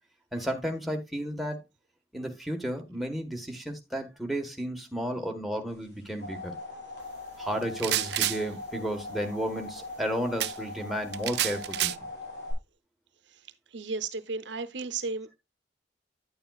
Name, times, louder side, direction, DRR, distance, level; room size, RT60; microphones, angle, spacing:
voice 1, 0.3-1.6 2.1-6.5 7.4-11.9, equal, ahead, 1.4 m, -33 dB
sound 1, 5.8-12.5, left 2 dB, 70° left, 5.8 m, -41 dB
sound 2, 7.6-8.4 10.4-10.5 11.1-11.9, right 14 dB, 65° right, 0.4 m, -28 dB
voice 2, 13.7-15.3, right 4 dB, 85° right, 0.9 m, -34 dB
10.5 x 8.8 x 2.4 m
head